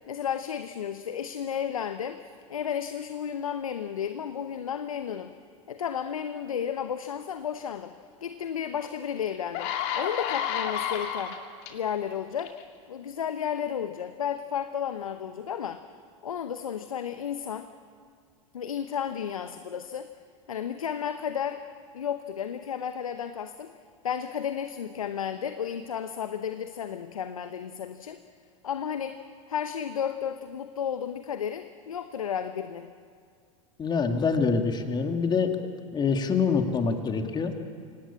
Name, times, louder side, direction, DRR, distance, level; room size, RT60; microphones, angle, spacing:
voice 1, 0.1-2.2 2.5-5.3 5.7-7.9 8.2-11.4 11.7-12.6 12.9-15.8 16.2-17.7 18.5-20.1 20.5-21.6 21.9-23.7 24.0-28.2 28.6-29.2 29.5-32.9, left 8 dB, 85° left, 9 dB, 0.9 m, -33 dB
sound 1, 8.8-8.9 9.3-11.7 12.4-12.6, left 9 dB, 55° left, 2.6 m, -31 dB
voice 2, 33.8-35.6 35.9-37.5, left 5 dB, 25° left, 5 dB, 2.4 m, -25 dB
25.5 x 18.0 x 8.7 m, 2.1 s
hypercardioid pair, 90°, 17 cm